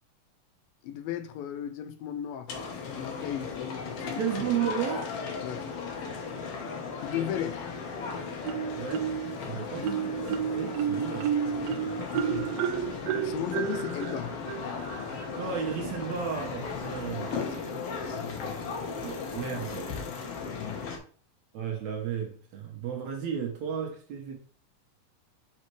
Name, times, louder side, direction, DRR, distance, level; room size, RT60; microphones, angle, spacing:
voice 1, 0.8-2.6 3.0-4.2 5.4-5.7 7.0-7.7 9.5-9.9 12.1-12.5 13.2-14.3 18.1-18.7 20.6-20.9, left 10 dB, 85° left, 2.4 m, -36 dB
sound 1, 2.5-21.0, left 5 dB, 65° left, 1.5 m, -36 dB
voice 2, 4.2-5.2 8.7-9.2 9.5-11.3 15.4-17.3 19.0-20.0 21.5-24.4, right 8 dB, 65° right, 2.0 m, -33 dB
Marimba xylophone, 8.4-9.4 9.8-15.3, right 8 dB, 85° right, 2.4 m, -31 dB
5.7 x 5.6 x 3.2 m
omnidirectional pair, 4.1 m